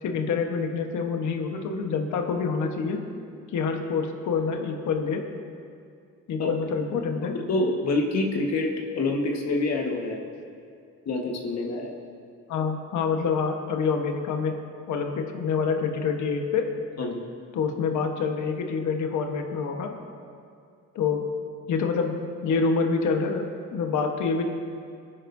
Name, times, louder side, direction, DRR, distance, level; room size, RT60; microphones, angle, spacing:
voice 1, 0.0-3.0 3.5-5.2 6.3-7.4 12.5-14.6 14.9-16.7 17.5-19.9 20.9-21.2 21.7-22.1 22.4-24.4, left 5 dB, 75° left, 3 dB, 1.2 m, -26 dB
voice 2, 7.5-8.7 8.9-10.3 11.1-11.9 17.0-17.2, left 2 dB, 60° left, 0 dB, 1.6 m, -26 dB
22.0 x 10.0 x 2.7 m, 2.3 s
cardioid pair, 90°, 30 cm